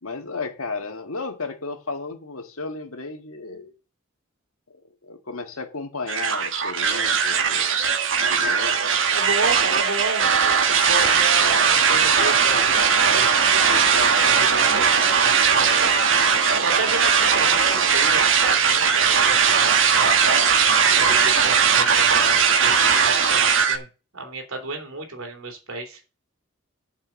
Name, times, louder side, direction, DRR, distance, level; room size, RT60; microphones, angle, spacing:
voice 1, 0.0-3.7 5.0-7.7 8.3-8.9, left 3 dB, 85° left, 1.8 m, -34 dB
sound 1, 6.1-23.8, right 6 dB, 60° right, 1.3 m, -19 dB
voice 2, 9.1-10.6 10.8-13.3 14.2-15.7 16.6-19.8 20.9-23.9 24.1-26.0, right 3 dB, 85° right, 3.3 m, -32 dB
7.3 x 5.8 x 7.6 m
head